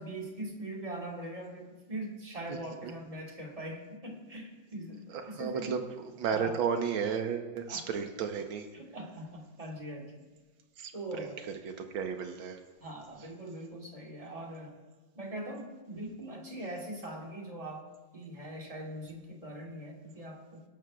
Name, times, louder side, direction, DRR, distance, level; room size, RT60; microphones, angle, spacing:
voice 1, 0.0-5.8 6.3-6.6 7.7-7.9 8.7-10.2 10.9-11.4 12.8-14.8 15.1-17.9 18.1-20.6, right 1 dB, 20° right, 0 dB, 1.4 m, -42 dB
voice 2, 5.4-5.8 6.2-8.7 10.8-10.9 11.2-11.3 11.7-12.6, right 6 dB, 75° right, 6 dB, 1.8 m, -33 dB
17.5 x 12.5 x 2.4 m, 1.3 s
omnidirectional pair, 2.3 m